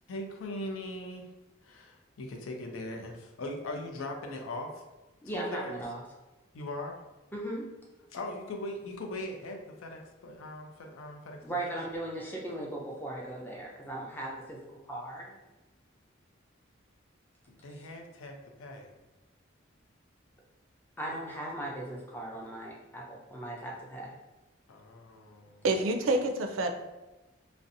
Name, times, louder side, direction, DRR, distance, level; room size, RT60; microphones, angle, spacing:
voice 1, 0.1-1.3 1.6-4.8 5.3-5.7 6.5-7.0 8.1-11.8 17.5-18.9 24.7-25.6, left 1 dB, 90° left, 3 dB, 0.4 m, -40 dB
voice 2, 5.2-6.0 7.3-7.7 11.4-15.4 21.0-24.1, right 1 dB, 10° left, -3 dB, 0.4 m, -38 dB
voice 3, 25.6-26.7, right 2 dB, 80° right, 5 dB, 0.3 m, -27 dB
2.5 x 2.0 x 2.6 m, 1.1 s
head